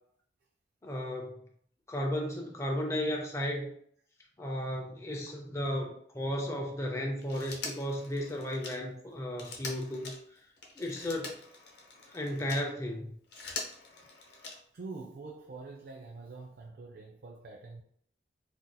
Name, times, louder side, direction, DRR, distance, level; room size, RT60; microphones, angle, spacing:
voice 1, 0.8-1.4 1.9-3.7 4.4-10.4 10.8-11.4 12.1-13.1, equal, 15° left, 0.5 m, -34 dB
Telephone, 7.2-12.7 13.1-14.9 16.2-16.3, left 3 dB, 65° left, 0.8 m, -44 dB
voice 2, 14.7-17.8, right 3 dB, 60° right, 0.4 m, -45 dB
4.0 x 2.5 x 2.2 m
head